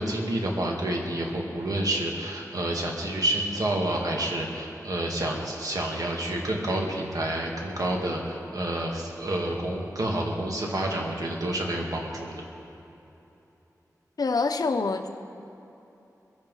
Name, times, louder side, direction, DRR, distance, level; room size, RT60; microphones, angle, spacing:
voice 1, 0.0-12.5, right 1 dB, 70° right, -1 dB, 2.2 m, -29 dB
voice 2, 14.2-15.1, left 4 dB, 80° left, 8 dB, 0.8 m, -25 dB
22.0 x 8.7 x 5.6 m, 3.0 s
wide cardioid pair, 90°, 6 cm